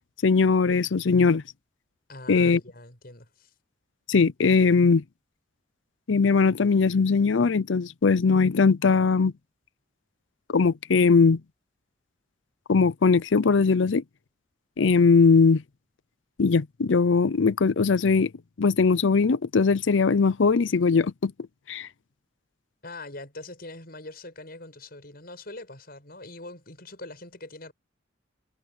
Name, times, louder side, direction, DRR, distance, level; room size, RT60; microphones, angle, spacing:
voice 1, 0.2-1.4 2.3-2.6 4.1-5.0 6.1-9.3 10.5-11.4 12.7-14.0 14.8-15.6 16.4-18.3 18.6-21.3 21.7-21.9, left 4 dB, 75° left, 0.6 m, -20 dB
voice 2, 2.1-3.5 22.8-27.7, left 2 dB, 50° left, 7.1 m, -42 dB
head